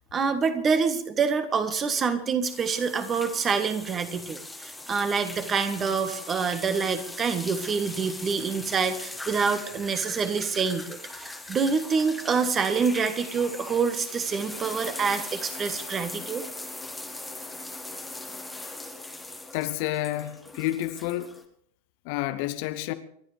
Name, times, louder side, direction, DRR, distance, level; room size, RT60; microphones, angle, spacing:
voice 1, 0.1-16.4, right 5 dB, 25° right, 1.6 m, -26 dB
sound 1, 2.4-21.4, left 2 dB, 5° left, 1.7 m, -40 dB
voice 2, 19.5-21.4 22.0-22.9, left 14 dB, 45° left, 0.9 m, -30 dB
29.0 x 12.0 x 3.4 m
figure-of-eight pair, 90°, 0 cm